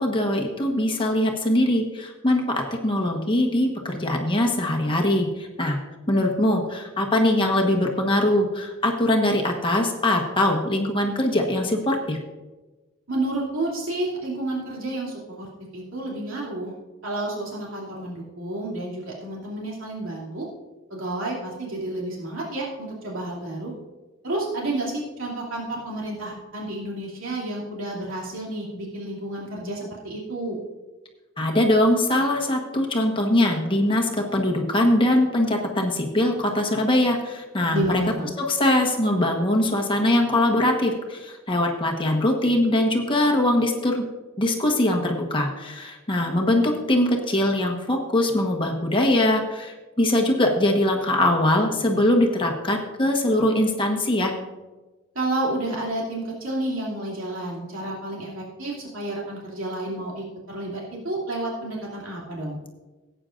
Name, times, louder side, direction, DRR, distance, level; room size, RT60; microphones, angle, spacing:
voice 1, 0.0-5.8 6.1-12.2 31.4-38.0 38.4-44.0 44.4-54.3, left 1 dB, 25° left, 1 dB, 1.2 m, -22 dB
voice 2, 13.1-15.5 15.7-16.7 17.0-20.5 20.9-23.7 24.2-30.6 37.7-38.2 55.1-62.6, right 1 dB, 75° right, -4 dB, 2.8 m, -30 dB
17.5 x 9.0 x 2.5 m, 1.2 s
head